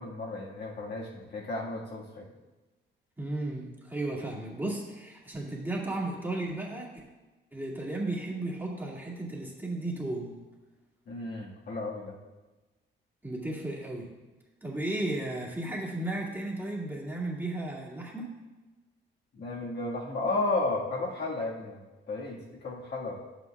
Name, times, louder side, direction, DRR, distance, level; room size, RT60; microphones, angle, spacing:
voice 1, 0.0-2.3 11.1-12.1 19.3-23.2, left 2 dB, 60° left, -3 dB, 1.8 m, -33 dB
voice 2, 3.2-6.9 7.5-10.4 13.2-14.1 14.6-18.3, right 2 dB, 10° right, -5 dB, 2.2 m, -34 dB
10.5 x 8.2 x 2.4 m, 1.2 s
cardioid pair, 90°, 20 cm